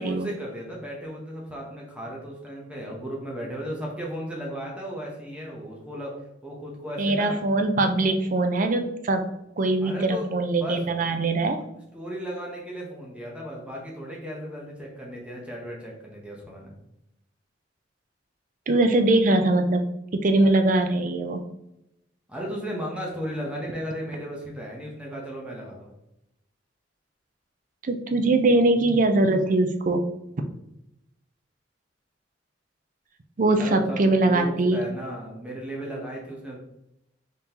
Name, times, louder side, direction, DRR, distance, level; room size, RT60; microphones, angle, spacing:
voice 1, 0.0-6.1 6.4-7.4 9.8-10.3 10.6-10.8 11.5-11.6 11.9-16.7 22.3-25.9 33.6-36.6, equal, 5° right, -3 dB, 0.9 m, -35 dB
voice 2, 7.0-9.3 9.6-11.6 18.7-19.9 20.1-21.4 27.8-30.1 33.4-34.8, right 2 dB, 45° right, 6 dB, 0.5 m, -22 dB
4.1 x 3.6 x 2.9 m, 0.86 s
head